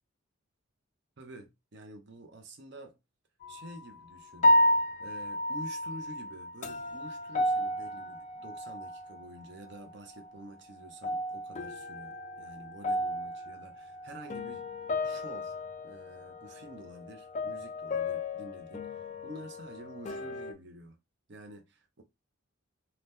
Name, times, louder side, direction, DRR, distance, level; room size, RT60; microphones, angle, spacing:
voice 1, 1.2-3.0 3.5-4.5 5.0-14.7 15.0-15.6 15.8-21.0 21.3-22.0, right 1 dB, 55° right, 0.6 m, -48 dB
sound 1, 3.4-3.8 4.4-9.3 9.6-10.4 10.8-20.5, left 1 dB, 35° left, 0.3 m, -32 dB
2.8 x 2.1 x 3.4 m
head